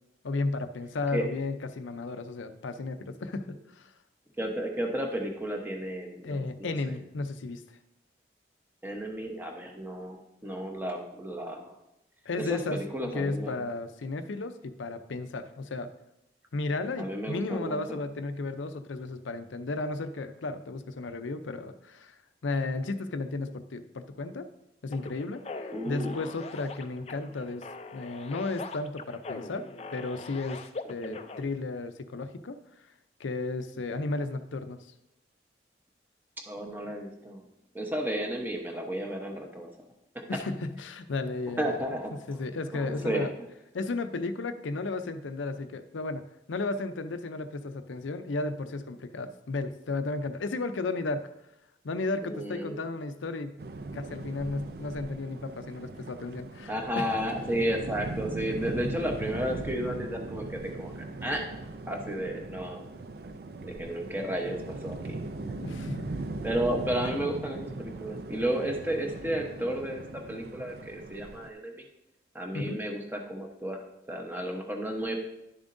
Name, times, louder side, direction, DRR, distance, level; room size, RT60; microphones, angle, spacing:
voice 1, 0.2-3.9 6.2-7.6 12.3-15.9 16.5-24.5 24.8-27.7 27.9-30.6 30.9-32.6 33.2-34.9 40.3-41.8 42.3-43.3 43.7-51.3 51.8-53.5 53.9-57.1 65.4-66.1 72.5-72.8, left 3 dB, 85° left, 10 dB, 0.6 m, -34 dB
voice 2, 4.4-6.9 8.8-11.7 12.4-13.6 17.0-17.8 25.7-26.1 31.0-31.2 36.5-37.4 37.7-39.7 41.6-42.1 42.7-43.3 52.2-52.8 56.7-61.4 61.9-62.8 63.6-65.2 65.5-65.6 66.4-70.0 70.3-71.8 72.3-73.8 74.1-75.1, right 1 dB, 10° right, 2 dB, 0.9 m, -33 dB
sound 1, 24.9-31.4, left 3 dB, 35° left, 0.4 m, -42 dB
sound 2, 53.6-71.5, right 2 dB, 55° right, 0.4 m, -39 dB
10.5 x 7.1 x 2.6 m, 0.88 s
head